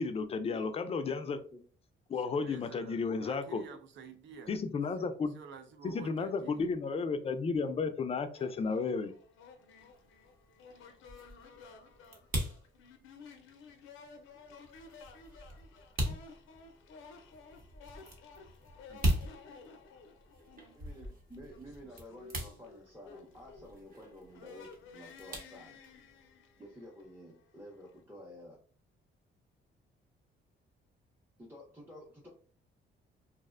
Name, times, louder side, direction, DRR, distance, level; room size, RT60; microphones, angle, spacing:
voice 1, 0.0-1.4 2.1-3.6 4.5-5.3 5.8-9.1, left 4 dB, 30° left, 0.3 m, -33 dB
voice 2, 1.0-1.6 20.7-25.8 26.6-28.6 31.4-32.3, equal, 10° right, 0.6 m, -51 dB
voice 3, 2.4-4.6 5.0-6.7 18.9-19.1, right 6 dB, 65° right, 0.5 m, -51 dB
sound 1, 8.4-28.0, left 4 dB, 85° left, 0.5 m, -55 dB
sound 2, 9.8-26.3, equal, 45° right, 0.9 m, -40 dB
2.5 x 2.0 x 2.4 m
cardioid pair, 90°, 20 cm